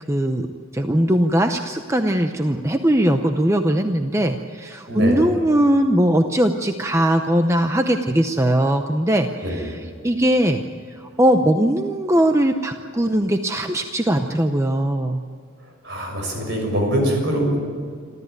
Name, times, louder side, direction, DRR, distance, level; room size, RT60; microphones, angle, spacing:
voice 1, 0.1-0.5 0.7-10.6 10.9-15.2, right 1 dB, 15° right, 6 dB, 0.7 m, -20 dB
voice 2, 4.9-5.2 9.4-9.6 15.8-17.6, equal, 55° right, 2 dB, 6.5 m, -23 dB
27.5 x 13.5 x 9.3 m, 2.1 s
head